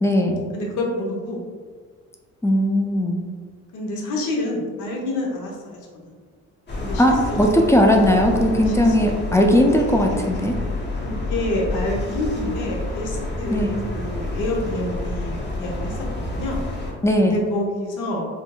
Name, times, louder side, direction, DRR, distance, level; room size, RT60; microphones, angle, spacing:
voice 1, 0.0-0.4 2.4-3.2 7.0-7.1 7.4-10.5 13.5-13.8 17.0-17.3, left 1 dB, 10° left, 2 dB, 0.4 m, -18 dB
voice 2, 0.5-1.5 3.7-6.2 6.8-7.4 8.7-9.0 11.0-16.6 17.2-18.3, left 1 dB, 85° left, -1 dB, 0.8 m, -28 dB
sound 1, 6.7-16.9, left 1 dB, 35° left, 0.7 m, -29 dB
3.6 x 2.5 x 2.2 m, 1.5 s
cardioid pair, 90°, 30 cm